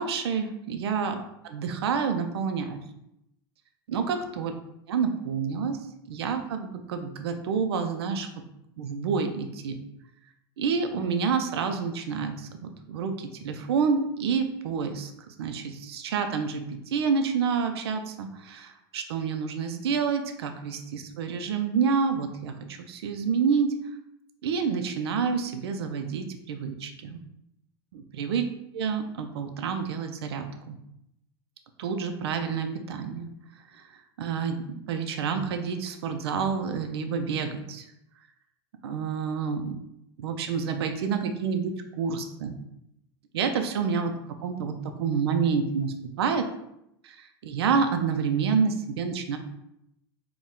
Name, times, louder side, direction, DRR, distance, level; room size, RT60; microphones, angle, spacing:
voice 1, 0.0-2.8 3.9-4.5 4.9-5.8 6.1-8.3 8.8-9.8 10.6-23.7 24.4-27.2 27.9-28.4 28.7-30.8 31.8-33.3 33.7-33.8 34.2-34.6 34.9-37.9 38.8-39.8 40.2-42.6 43.3-44.1 44.4-46.5 47.0-49.4, right 6 dB, 75° right, 6 dB, 0.5 m, -28 dB
4.3 x 2.3 x 3.6 m, 0.81 s
hypercardioid pair, 95°, 13 cm